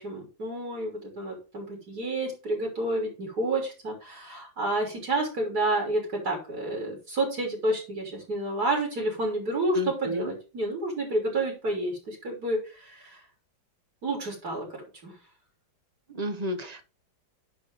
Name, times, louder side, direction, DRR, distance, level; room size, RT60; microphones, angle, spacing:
voice 1, 0.0-13.2 14.0-15.1, right 2 dB, 50° right, 0 dB, 3.8 m, -30 dB
voice 2, 9.7-10.3 16.1-16.8, left 1 dB, 30° right, 7 dB, 0.8 m, -32 dB
10.5 x 4.3 x 5.0 m, 0.32 s
omnidirectional pair, 2.1 m